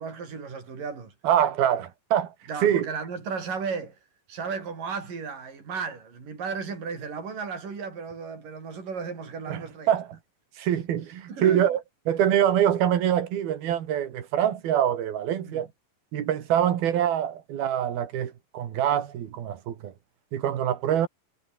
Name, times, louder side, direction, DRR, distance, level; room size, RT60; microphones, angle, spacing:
voice 1, 0.0-1.1 2.5-4.0 4.3-9.9 11.3-11.7 15.5-15.7, right 5 dB, 65° right, 7.5 m, -34 dB
voice 2, 1.2-2.3 2.6-2.9 9.5-10.2 10.6-11.8 12.1-15.7 16.1-19.9 20.3-21.1, right 10 dB, 85° right, 4.1 m, -25 dB
omnidirectional pair, 4.2 m